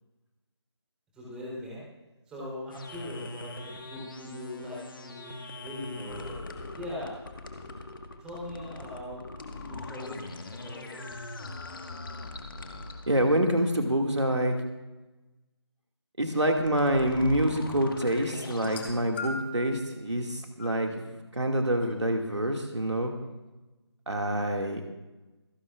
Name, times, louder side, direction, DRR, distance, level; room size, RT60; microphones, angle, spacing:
voice 1, 1.1-1.9 2.3-6.4 6.7-7.1 7.7-7.8 8.2-11.2, left 1 dB, 5° right, -7 dB, 3.7 m, -41 dB
sound 1, 2.7-13.5 16.5-18.9, left 2 dB, 50° left, 1.6 m, -41 dB
voice 2, 13.1-14.6 16.2-23.1 24.1-24.8, right 1 dB, 80° right, 2 dB, 2.3 m, -26 dB
sound 2, 18.5-19.7 20.6-20.8 21.8-21.9, left 2 dB, 25° left, 1.9 m, -38 dB
27.0 x 11.0 x 2.5 m, 1.1 s
figure-of-eight pair, 160°, 15 cm